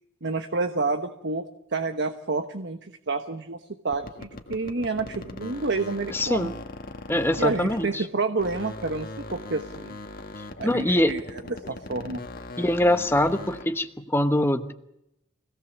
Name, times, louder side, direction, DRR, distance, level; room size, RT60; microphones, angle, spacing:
voice 1, 0.2-6.5 7.4-10.0 10.6-11.2 11.5-12.2, right 3 dB, 55° right, 7 dB, 1.2 m, -29 dB
sound 1, 3.9-8.1 8.4-13.8, left 2 dB, 45° left, 1.7 m, -40 dB
voice 2, 6.1-6.5 7.1-8.0 10.6-11.2 12.6-14.7, left 1 dB, 10° left, 8 dB, 1.1 m, -23 dB
25.0 x 17.5 x 7.2 m, 0.83 s
head